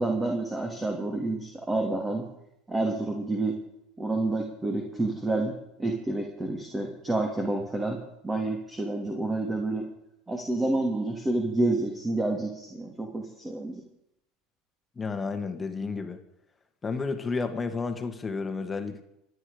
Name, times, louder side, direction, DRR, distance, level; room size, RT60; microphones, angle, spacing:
voice 1, 0.0-2.2 2.7-3.6 4.0-9.8 10.3-13.8, right 2 dB, 15° right, 1 dB, 2.8 m, -29 dB
voice 2, 15.0-16.2 16.8-19.0, left 4 dB, 20° left, 8 dB, 2.0 m, -31 dB
25.5 x 9.8 x 5.2 m, 0.82 s
hypercardioid pair, 85°, 0 cm